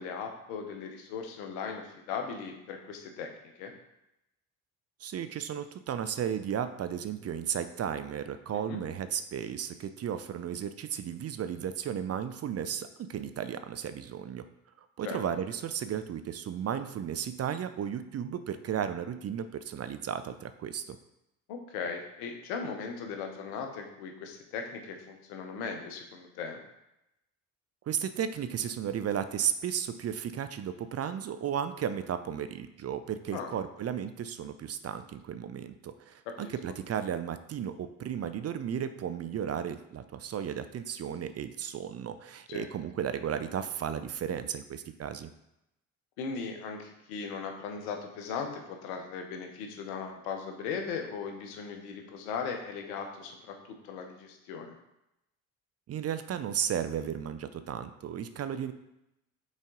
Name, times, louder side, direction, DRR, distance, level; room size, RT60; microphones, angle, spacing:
voice 1, 0.0-3.3 3.6-3.7 8.5-8.8 15.0-15.2 21.5-26.6 33.3-33.5 36.3-36.5 42.5-42.7 46.2-54.8, left 5 dB, 75° left, 3 dB, 1.0 m, -38 dB
voice 2, 5.0-14.5 15.0-21.0 27.9-45.3 55.9-58.7, right 9 dB, 35° right, 11 dB, 0.5 m, -34 dB
6.3 x 4.1 x 3.8 m, 0.86 s
hypercardioid pair, 50°, 42 cm